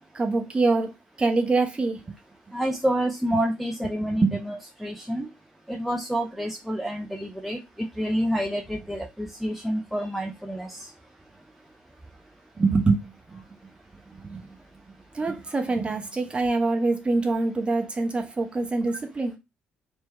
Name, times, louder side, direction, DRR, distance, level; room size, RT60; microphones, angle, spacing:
voice 1, 0.1-2.0 4.0-4.4 12.6-13.0 13.3-13.4 14.2-14.5 15.1-19.4, right 3 dB, 20° right, 0.8 m, -25 dB
voice 2, 2.5-5.3 5.7-10.9 15.5-15.6, equal, ahead, 0.5 m, -28 dB
3.3 x 2.2 x 4.0 m
figure-of-eight pair, 45°, 5 cm